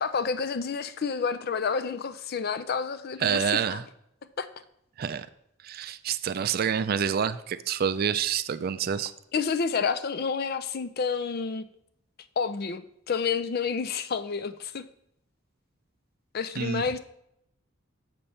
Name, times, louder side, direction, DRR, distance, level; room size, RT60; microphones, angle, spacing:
voice 1, 0.0-3.8 4.4-4.5 9.3-11.6 12.4-14.8 16.3-17.0, left 5 dB, 50° left, 12 dB, 0.4 m, -29 dB
voice 2, 3.2-3.8 5.0-5.3 5.6-9.1 16.6-16.8, right 7 dB, 45° right, 13 dB, 0.3 m, -27 dB
6.9 x 6.7 x 4.3 m, 0.76 s
head